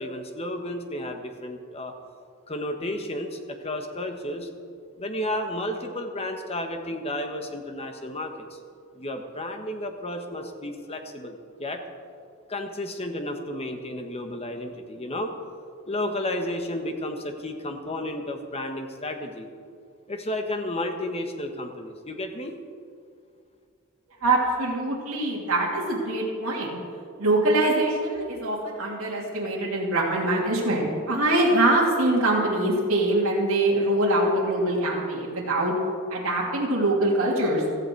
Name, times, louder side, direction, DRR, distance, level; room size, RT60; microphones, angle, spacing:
voice 1, 0.0-1.9 2.5-4.5 5.0-8.6 8.9-11.8 12.5-15.3 15.8-19.5 20.1-22.5, left 1 dB, 30° left, 5 dB, 1.4 m, -32 dB
voice 2, 24.2-26.8 27.2-35.7 36.1-37.6, right 1 dB, 70° right, -5 dB, 2.9 m, -23 dB
16.0 x 14.0 x 4.7 m, 2.3 s
head